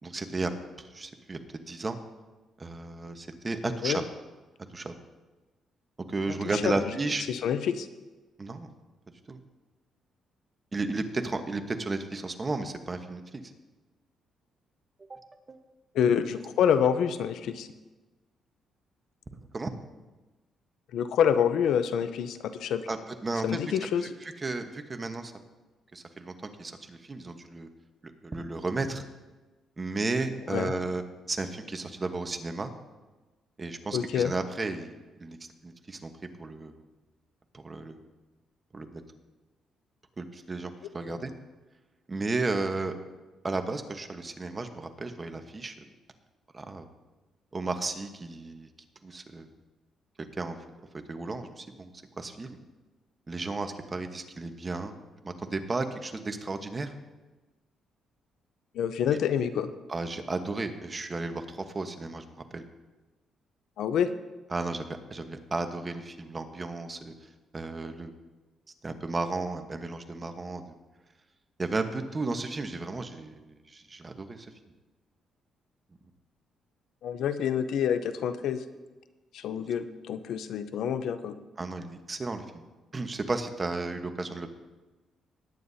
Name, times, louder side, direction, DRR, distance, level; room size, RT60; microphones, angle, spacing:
voice 1, 0.0-0.5 0.8-1.4 1.7-2.0 2.6-4.0 4.7-4.9 6.1-7.3 8.4-8.7 9.3-9.4 10.7-13.4 15.1-15.2 15.5-15.6 19.5-19.7 22.9-23.0 23.2-23.6 24.4-25.3 25.9-26.3 26.6-27.7 28.2-29.0 29.8-31.0 31.3-32.7 33.6-34.9 35.2-35.4 35.6-36.1 36.4-36.7 37.5-38.0 38.7-39.0 40.2-41.3 42.1-43.0 43.4-45.7 46.5-46.9 47.5-48.7 49.0-49.5 50.4-50.6 51.1-51.9 52.2-52.6 53.3-54.9 55.2-56.9 59.9-62.2 62.5-62.6 64.5-67.1 67.5-68.1 68.8-70.7 71.6-74.5 81.6-82.6 82.9-84.5, right 3 dB, 25° right, 7 dB, 1.1 m, -33 dB
voice 2, 3.6-4.0 6.5-6.7 7.3-7.9 15.9-17.7 20.9-22.9 23.4-24.1 30.5-30.7 33.9-34.3 41.1-41.2 58.7-59.7 63.8-64.1 77.0-78.6 79.3-81.4, left 8 dB, 75° left, 11 dB, 0.6 m, -27 dB
19.5 x 9.3 x 2.8 m, 1.2 s
cardioid pair, 90°, 0 cm